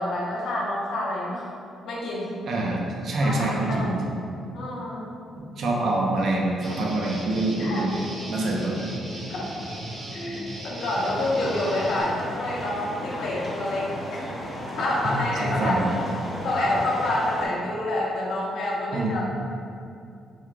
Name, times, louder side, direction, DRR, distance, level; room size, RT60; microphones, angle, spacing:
voice 1, 0.0-1.5 1.8-2.3 3.2-3.9 4.5-5.1 7.6-7.9 9.3-9.5 10.1-14.3 14.8-15.8 16.4-19.2, left 1 dB, 70° left, -4 dB, 0.9 m, -28 dB
voice 2, 2.5-4.1 5.4-8.0 8.3-8.8 15.0-15.1 15.4-15.9 18.9-19.2, right 2 dB, 65° right, -2 dB, 0.7 m, -26 dB
Guitar, 6.6-12.0, right 1 dB, 40° right, 1.4 m, -37 dB
sound 1, 10.9-17.4, left 1 dB, 30° left, 1.2 m, -34 dB
5.5 x 3.2 x 2.3 m, 2.5 s
cardioid pair, 90°, 0 cm